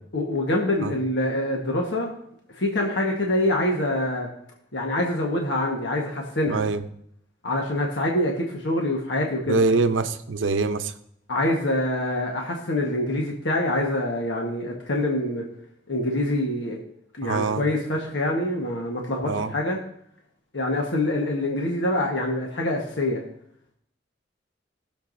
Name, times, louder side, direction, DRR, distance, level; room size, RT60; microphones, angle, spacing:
voice 1, 0.1-2.1 2.6-4.3 4.7-6.6 7.4-9.6 11.3-15.5 15.9-16.8 17.2-19.8 20.5-23.2, left 1 dB, 70° left, 0 dB, 1.4 m, -25 dB
voice 2, 6.5-6.8 9.5-10.9 17.2-17.6 19.2-19.5, right 3 dB, 85° right, 9 dB, 0.7 m, -24 dB
19.0 x 6.9 x 2.6 m, 0.69 s
head